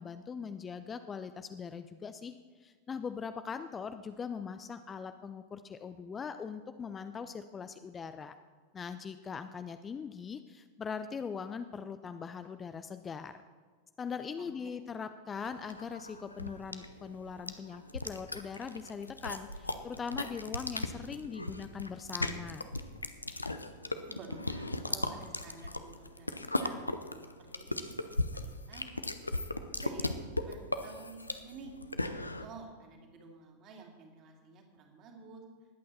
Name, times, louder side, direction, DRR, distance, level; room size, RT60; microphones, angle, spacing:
voice 1, 0.0-8.3 8.7-13.4 14.0-22.7, left 6 dB, 20° left, 10 dB, 0.5 m, -41 dB
voice 2, 14.4-14.8 24.1-27.9 28.3-29.0 29.3-30.2 30.4-31.8 32.1-35.4, right 4 dB, 35° right, 1 dB, 2.6 m, -51 dB
sound 1, 15.4-32.5, left 2 dB, 85° left, 0.7 m, -37 dB
20.0 x 8.5 x 4.2 m, 1.5 s
figure-of-eight pair, 90°, 0 cm